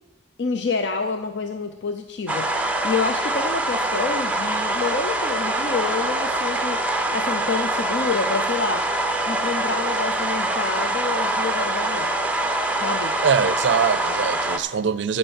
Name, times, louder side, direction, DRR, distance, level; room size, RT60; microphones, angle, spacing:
voice 1, 0.4-8.9 9.3-12.1 12.8-13.1, left 4 dB, 60° left, 0.6 m, -28 dB
sound 1, 2.3-14.6, right 2 dB, 5° right, 0.6 m, -24 dB
voice 2, 13.2-15.2, right 6 dB, 65° right, 0.4 m, -22 dB
13.0 x 5.4 x 7.0 m
head